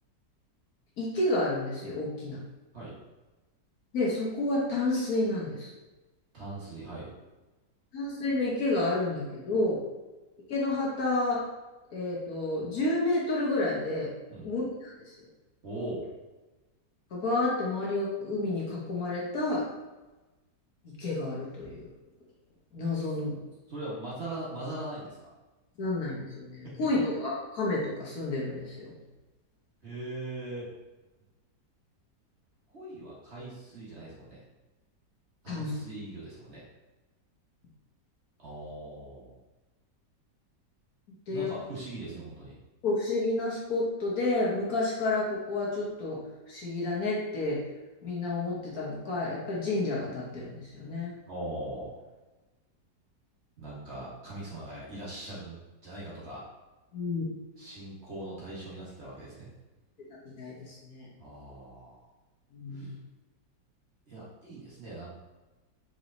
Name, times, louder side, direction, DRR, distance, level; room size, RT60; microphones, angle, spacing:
voice 1, 1.0-2.4 3.9-5.7 7.9-9.8 10.5-11.4 11.9-14.1 14.4-15.3 17.1-19.7 21.0-21.8 22.7-23.4 25.8-28.9 35.5-35.7 41.3-41.5 42.8-46.2 46.5-47.6 48.0-51.1 56.9-57.2 60.4-61.1 62.5-63.0, left 2 dB, 60° left, -5 dB, 1.4 m, -30 dB
voice 2, 6.3-7.1 14.3-14.5 15.6-16.1 22.9-23.2 23.7-25.2 26.6-26.7 29.8-30.7 32.7-34.4 35.4-36.6 38.4-39.4 41.3-42.5 51.3-52.0 53.6-56.4 57.6-59.5 61.2-62.1 62.7-62.9 64.1-65.1, right 1 dB, 40° right, -7 dB, 1.4 m, -40 dB
4.7 x 4.1 x 2.6 m, 1.1 s
omnidirectional pair, 1.9 m